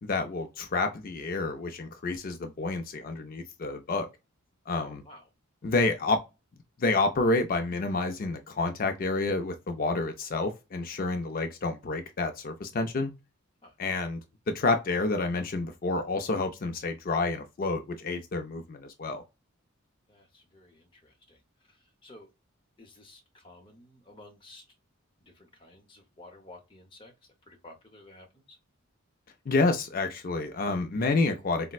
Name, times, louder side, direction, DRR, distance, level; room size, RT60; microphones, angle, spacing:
voice 1, 0.0-4.1 4.7-5.0 5.6-6.2 6.8-13.1 13.8-14.2 14.5-19.2 29.5-31.7, left 3 dB, 40° left, 0.4 m, -29 dB
voice 2, 4.8-5.2 13.6-13.7 20.1-21.4 22.0-22.3 22.8-24.6 25.4-27.1 27.5-28.6, left 2 dB, 25° left, 0.8 m, -52 dB
4.1 x 2.1 x 2.3 m
head